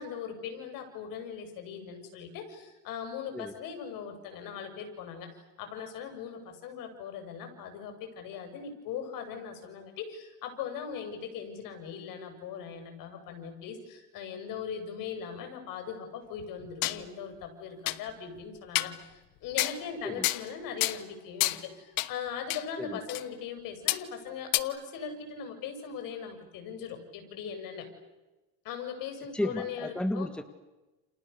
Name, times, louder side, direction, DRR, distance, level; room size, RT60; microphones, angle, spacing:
voice 1, 0.0-5.3 5.6-27.9 28.6-30.3, left 7 dB, 70° left, 6 dB, 6.9 m, -40 dB
sound 1, 16.4-17.0 17.4-17.5 17.9-18.0 18.7-19.0 19.6-19.8 20.2-20.5 20.8-21.0 21.4-21.6 22.0-22.1 22.5-22.6 23.1-23.2 23.9-24.0 24.5-24.6, left 19 dB, 90° left, 1.3 m, -29 dB
voice 2, 29.3-30.4, left 1 dB, 5° left, 8 dB, 1.7 m, -33 dB
29.5 x 29.0 x 6.9 m, 1.1 s
cardioid pair, 135°, 35 cm